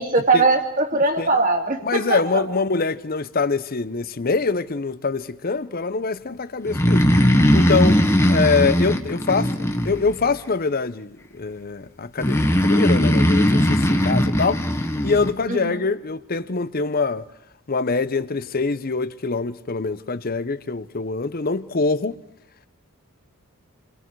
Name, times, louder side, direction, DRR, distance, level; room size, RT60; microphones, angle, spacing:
voice 1, 0.0-2.4 15.5-15.8, right 3 dB, 40° right, 2.8 m, -21 dB
voice 2, 1.8-7.0 7.5-8.0 8.3-14.6 15.0-17.2 17.7-22.2, left 4 dB, 40° left, 0.8 m, -24 dB
Breathing, 6.7-10.4 12.2-15.3, equal, 10° left, 1.6 m, -19 dB
29.5 x 23.5 x 4.7 m
head